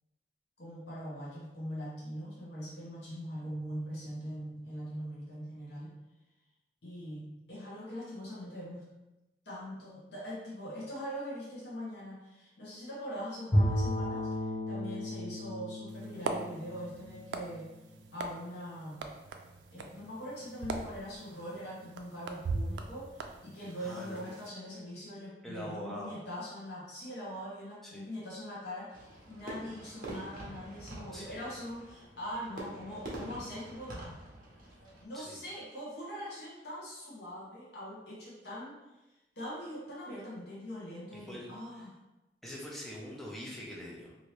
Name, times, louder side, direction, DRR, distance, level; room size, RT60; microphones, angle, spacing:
voice 1, 0.6-5.9 6.8-8.8 9.4-17.7 18.1-19.0 19.7-34.0 35.0-38.8 39.4-42.0, equal, 70° left, -6 dB, 0.9 m, -42 dB
Bowed string instrument, 13.5-17.8, equal, 30° left, 0.8 m, -33 dB
sound 1, 15.9-24.5, right 3 dB, 85° right, 0.3 m, -41 dB
voice 2, 23.8-24.2 25.4-26.1 27.8-28.0 31.1-31.4 35.1-35.4 41.3-41.9 42.4-44.3, equal, ahead, -4 dB, 0.6 m, -44 dB
Fireworks, 28.9-35.0, right 1 dB, 50° right, 0.8 m, -45 dB
2.8 x 2.7 x 3.2 m, 1.0 s
head